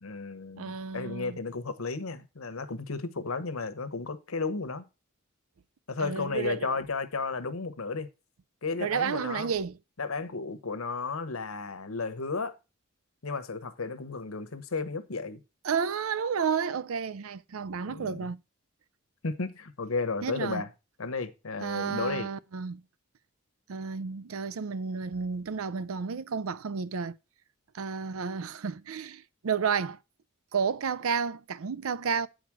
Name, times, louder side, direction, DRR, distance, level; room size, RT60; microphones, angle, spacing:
voice 1, 0.0-4.9 5.9-8.1 8.6-9.5 10.0-12.5 13.2-15.4 17.9-18.3 19.2-20.7 21.0-22.3, left 4 dB, 85° left, 1.0 m, -33 dB
voice 2, 0.6-1.4 6.0-6.7 8.8-9.8 15.6-18.4 20.2-20.6 21.6-22.8 23.7-27.1 27.7-30.0 30.5-32.3, right 6 dB, 80° right, 0.5 m, -31 dB
8.0 x 5.0 x 6.0 m
head